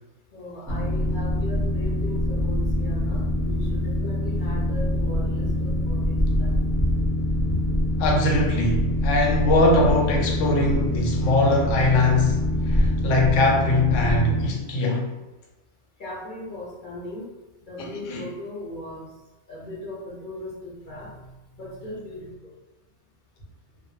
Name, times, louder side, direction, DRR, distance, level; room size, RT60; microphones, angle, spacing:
voice 1, 0.3-6.5 6.8-6.9 7.5-7.6 16.0-17.3 17.7-19.1 19.5-22.6, left 1 dB, 50° left, 0.7 m, -38 dB
Boat Water vehicle, 0.7-14.5, left 1 dB, 15° right, 0.6 m, -24 dB
voice 2, 8.0-15.1 17.8-18.2, left 2 dB, 85° left, 1.0 m, -22 dB
2.1 x 2.0 x 3.0 m
omnidirectional pair, 1.3 m